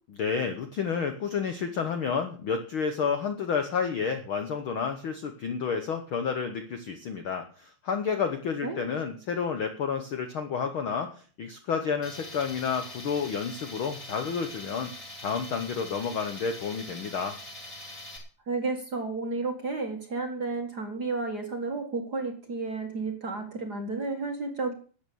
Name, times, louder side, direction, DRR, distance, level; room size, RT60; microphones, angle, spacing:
voice 1, 0.2-11.1 11.4-14.9 15.2-17.4, left 6 dB, 60° left, 7 dB, 1.3 m, -30 dB
Tools, 12.0-18.2, left 1 dB, 25° left, 3.4 m, -43 dB
voice 2, 18.5-24.7, right 3 dB, 40° right, 4 dB, 1.8 m, -32 dB
12.5 x 8.8 x 7.0 m, 0.41 s
omnidirectional pair, 3.6 m